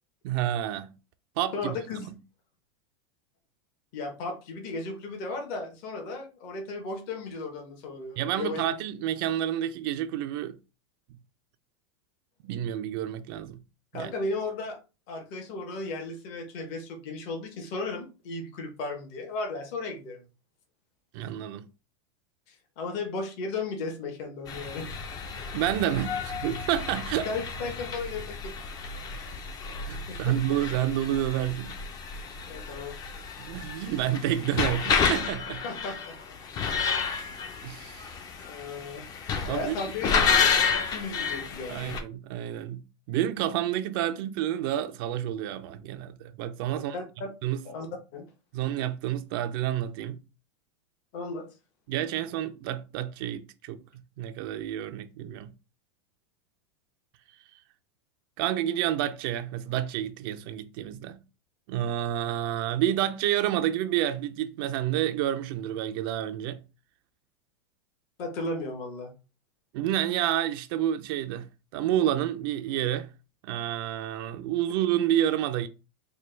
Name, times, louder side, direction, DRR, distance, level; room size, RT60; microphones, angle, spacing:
voice 1, 0.2-0.9 1.4-2.1 8.2-10.6 12.4-13.6 13.9-14.1 21.1-21.7 25.5-27.3 29.9-31.8 33.4-35.6 37.6-38.1 39.4-39.8 41.7-42.8 43.1-46.9 47.4-47.6 48.5-50.2 51.9-53.8 54.2-55.5 58.4-61.2 61.7-66.6 69.7-71.5 71.7-73.1 73.4-75.7, right 11 dB, 55° right, 0.4 m, -29 dB
voice 2, 1.5-2.1 3.9-8.6 13.9-14.8 15.1-20.3 22.5-25.0 27.2-28.6 30.1-30.4 32.5-33.0 35.6-36.2 38.4-39.1 39.5-41.9 46.7-47.3 47.6-47.9 48.1-48.2 51.1-51.5 68.2-69.1, left 3 dB, 50° left, 1.1 m, -35 dB
sound 1, 24.5-42.0, left 5 dB, 25° left, 0.5 m, -31 dB
4.3 x 2.2 x 3.2 m
supercardioid pair, 145°, 14 cm